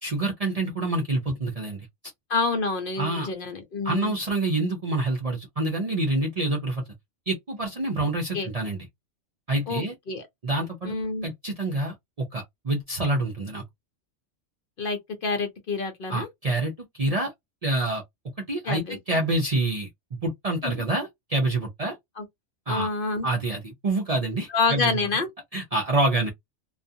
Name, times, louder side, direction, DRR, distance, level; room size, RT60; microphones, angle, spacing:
voice 1, 0.0-1.9 3.0-3.3 3.8-6.8 7.3-8.9 9.5-9.9 10.4-10.9 11.2-13.6 16.1-17.3 17.6-18.0 18.4-22.0 22.7-22.9 23.2-24.9 25.5-26.3, right 2 dB, 45° right, 0.5 m, -27 dB
voice 2, 2.3-4.2 8.3-8.5 9.7-10.2 10.8-11.3 14.8-16.3 18.6-19.0 20.6-20.7 22.2-22.3 22.7-23.3 24.5-25.3, left 3 dB, 55° left, 0.8 m, -27 dB
2.4 x 2.3 x 2.6 m
omnidirectional pair, 1.2 m